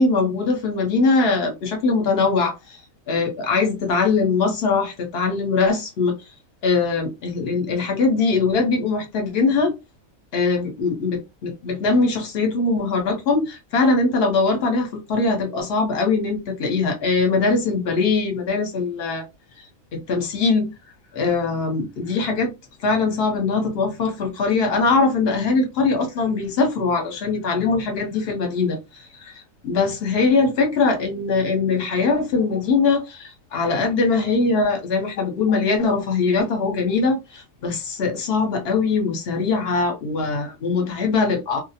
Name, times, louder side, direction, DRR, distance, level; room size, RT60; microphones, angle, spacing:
voice 1, 0.0-2.8 3.1-6.2 6.6-9.7 10.3-19.3 19.9-20.7 21.1-22.5 22.8-29.3 29.6-41.6, left 4 dB, 50° left, 0.9 m, -21 dB
2.4 x 2.0 x 2.7 m
omnidirectional pair, 1.4 m